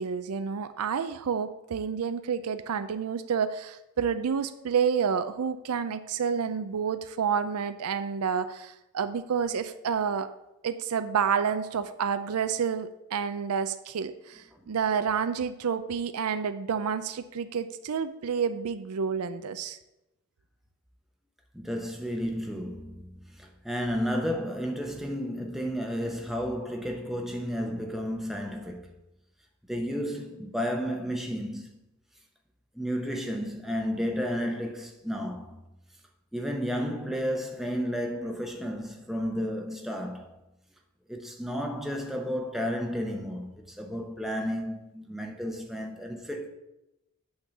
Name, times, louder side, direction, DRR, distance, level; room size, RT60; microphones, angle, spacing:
voice 1, 0.0-10.3 10.6-19.8, right 6 dB, 90° right, 0.5 m, -29 dB
voice 2, 21.5-28.9 29.7-31.7 32.7-35.6 36.3-40.3 41.1-46.5, equal, ahead, 0.7 m, -32 dB
8.8 x 3.8 x 6.9 m
head